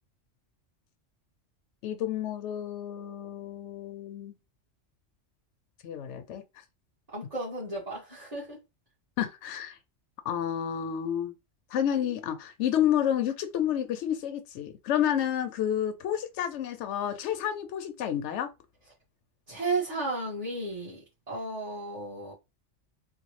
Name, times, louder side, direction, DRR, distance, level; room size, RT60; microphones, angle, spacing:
voice 1, 1.8-4.3 5.8-6.4 9.2-9.8 10.2-11.3 11.7-18.5, left 10 dB, 75° left, 0.9 m, -30 dB
voice 2, 7.1-8.6 19.5-22.3, right 3 dB, 30° right, 1.6 m, -34 dB
3.6 x 2.3 x 3.1 m
omnidirectional pair, 1.2 m